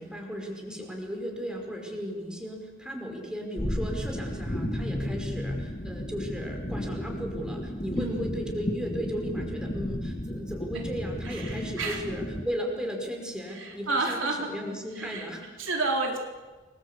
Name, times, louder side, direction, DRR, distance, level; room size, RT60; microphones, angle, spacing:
voice 1, 0.0-15.4, equal, 5° right, 1 dB, 5.4 m, -36 dB
sound 1, 3.6-12.4, equal, 30° left, 2.0 m, -33 dB
voice 2, 11.2-12.0 13.5-14.5 15.0-15.3 15.6-16.2, right 3 dB, 70° right, 2 dB, 4.0 m, -30 dB
29.5 x 22.0 x 8.5 m, 1.3 s
head